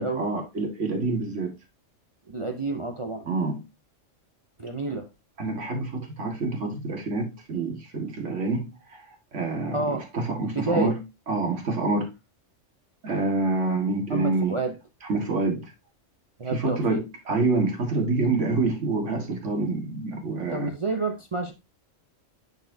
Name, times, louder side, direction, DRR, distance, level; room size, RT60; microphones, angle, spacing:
voice 1, 0.0-1.5 3.3-3.6 5.4-9.0 9.3-11.0 11.3-12.1 13.0-14.6 15.1-15.7 16.5-20.7, right 3 dB, 70° right, 2.1 m, -27 dB
voice 2, 2.3-3.3 4.6-5.1 9.7-10.1 10.4-10.9 14.1-14.8 16.4-17.0 20.5-21.5, right 3 dB, 35° right, 0.6 m, -29 dB
10.0 x 4.3 x 2.7 m
omnidirectional pair, 1.3 m